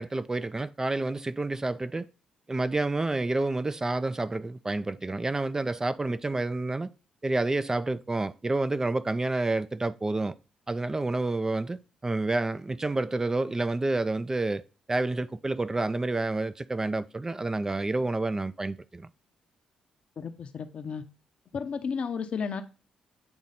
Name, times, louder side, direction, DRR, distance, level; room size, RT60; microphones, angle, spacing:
voice 1, 0.0-2.1 2.5-6.9 7.2-10.4 10.7-14.6 14.9-19.1, right 2 dB, 25° right, 0.4 m, -29 dB
voice 2, 20.2-21.0 21.5-22.6, left 6 dB, 55° left, 0.7 m, -33 dB
8.6 x 3.1 x 4.1 m
hypercardioid pair, 45°, 2 cm